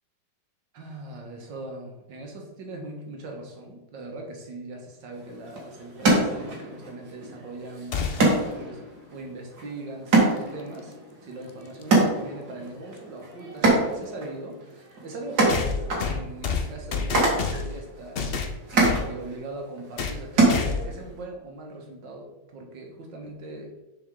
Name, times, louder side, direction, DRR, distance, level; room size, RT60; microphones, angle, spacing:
voice 1, 0.7-8.1 8.5-8.8 9.1-11.0 11.2-15.7 16.1-23.7, right 2 dB, 85° right, 1 dB, 2.0 m, -40 dB
sound 1, 5.1-21.2, right 2 dB, 60° right, 2.3 m, -27 dB
sound 2, 7.9-8.5 10.6-10.7 11.8-11.9 15.5-17.8 18.2-19.1 20.0-20.2 20.5-21.0, left 5 dB, 65° left, 0.5 m, -29 dB
7.0 x 6.1 x 3.7 m, 0.99 s
omnidirectional pair, 1.9 m